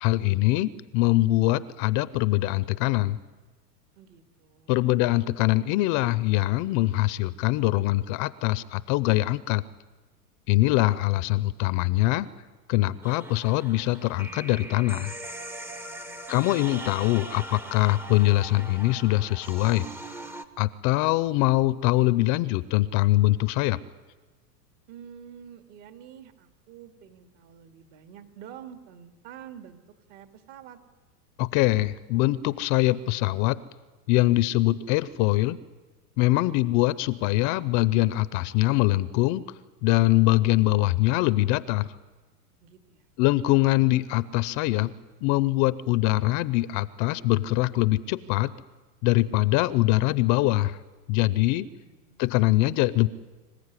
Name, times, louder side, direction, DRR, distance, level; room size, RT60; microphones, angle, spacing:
voice 1, 0.0-3.2 4.7-9.6 10.5-12.3 12.7-15.1 16.3-19.8 20.6-23.8 31.4-33.6 34.1-35.6 36.2-39.4 39.8-41.9 43.2-44.9 45.2-48.5 49.0-50.8 51.1-51.7 52.2-53.1, left 18 dB, 40° left, 17 dB, 0.7 m, -23 dB
voice 2, 4.0-4.8 15.8-16.4 24.9-29.8 30.1-30.8 42.6-43.0 51.8-52.3, right 9 dB, 50° right, 7 dB, 2.7 m, -48 dB
sound 1, 13.0-20.4, right 1 dB, 5° right, 0.7 m, -40 dB
25.5 x 15.0 x 9.9 m, 1.3 s
supercardioid pair, 130°, 47 cm